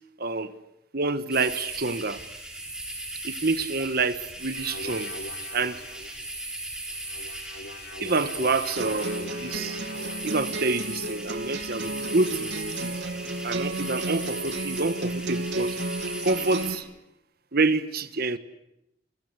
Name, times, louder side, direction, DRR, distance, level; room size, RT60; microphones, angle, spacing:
voice 1, 0.2-0.5 0.9-2.2 3.2-5.1 5.5-5.8 8.0-9.8 10.2-13.0 13.4-15.8 16.2-16.9 17.5-18.4, right 3 dB, 55° right, 11 dB, 1.4 m, -27 dB
sound 1, 1.3-16.7, right 1 dB, 5° right, 5.5 m, -37 dB
sound 2, 4.5-6.2 6.9-10.6, left 2 dB, 60° left, 2.1 m, -42 dB
sound 3, 8.8-16.7, right 2 dB, 70° right, 2.8 m, -33 dB
29.5 x 23.0 x 8.3 m, 0.83 s
head